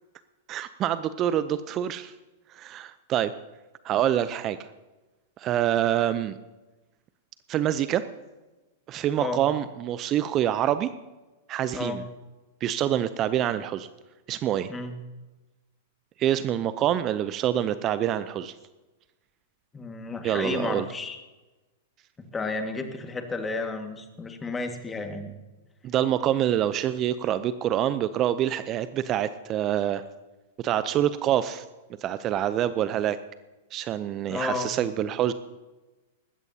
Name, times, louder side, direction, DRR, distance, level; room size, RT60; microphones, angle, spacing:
voice 1, 0.5-2.1 2.5-3.3 3.8-4.6 5.4-6.3 7.5-8.0 8.9-10.9 11.5-12.0 12.6-13.9 14.3-14.7 16.2-18.5 20.2-20.9 25.8-30.0 30.6-31.6 32.0-33.2 33.7-35.3, right 11 dB, 35° right, 13 dB, 0.6 m, -26 dB
voice 2, 19.7-21.2 22.3-25.3 34.3-34.7, left 3 dB, 15° left, 5 dB, 1.9 m, -32 dB
19.5 x 16.0 x 2.9 m, 1.1 s
hypercardioid pair, 105°, 0 cm